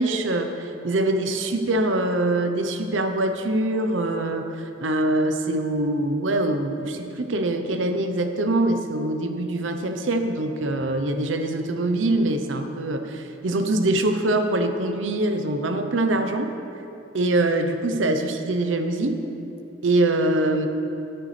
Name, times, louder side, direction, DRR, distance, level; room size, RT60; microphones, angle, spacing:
voice 1, 0.0-16.5 17.1-19.2 19.8-20.7, right 2 dB, 90° right, 7 dB, 0.7 m, -24 dB
13.0 x 9.0 x 3.3 m, 2.9 s
head